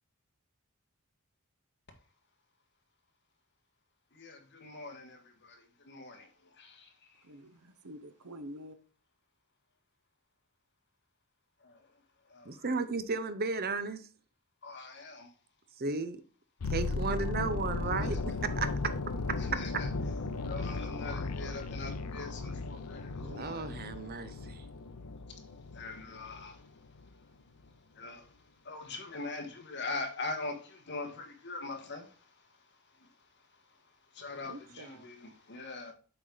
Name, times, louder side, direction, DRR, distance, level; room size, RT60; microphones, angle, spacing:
voice 1, 4.1-7.1 11.6-11.9 12.3-12.6 14.6-15.3 19.4-19.9 20.4-23.7 25.3-25.4 25.7-26.6 27.9-28.3 28.6-32.3 33.0-33.1 34.1-35.9, left 3 dB, 50° left, 1.7 m, -42 dB
voice 2, 7.2-8.8 34.3-35.1, equal, 85° right, 0.9 m, -48 dB
voice 3, 12.4-14.0 15.8-16.2 16.7-18.9 23.2-24.6, right 4 dB, 45° right, 0.7 m, -34 dB
sound 1, 16.6-26.6 26.9-27.1, left 3 dB, 80° left, 0.7 m, -36 dB
7.6 x 4.9 x 4.0 m
head